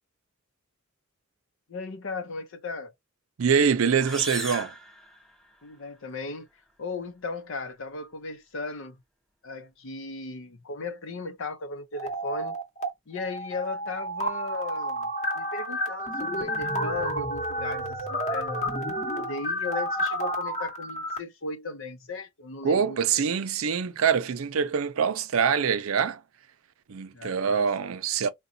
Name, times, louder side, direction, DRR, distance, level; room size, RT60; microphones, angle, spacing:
voice 1, 1.7-2.9 5.6-6.5 6.8-9.0 9.4-12.6 13.1-15.1 15.3-18.7 19.1-23.3 27.1-27.7, left 3 dB, 70° left, 0.6 m, -36 dB
voice 2, 3.4-4.7 22.6-26.2 26.9-28.3, right 6 dB, 85° right, 0.5 m, -24 dB
sound 1, 3.9-5.8, equal, 5° left, 0.7 m, -37 dB
sound 2, 11.9-12.9 13.2-21.2, equal, 35° left, 0.9 m, -30 dB
3.7 x 2.2 x 2.6 m
head